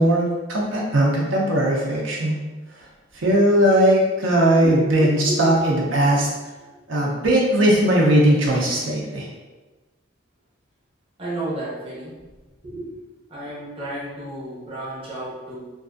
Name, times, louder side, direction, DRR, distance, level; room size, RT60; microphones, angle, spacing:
voice 1, 0.0-2.4 3.2-6.3 6.9-9.3, right 1 dB, 75° right, -3 dB, 0.5 m, -19 dB
voice 2, 4.6-5.4 11.2-12.1 12.6-12.9 13.3-15.6, right 1 dB, 30° right, -6 dB, 0.7 m, -32 dB
2.6 x 2.4 x 2.4 m, 1.2 s
head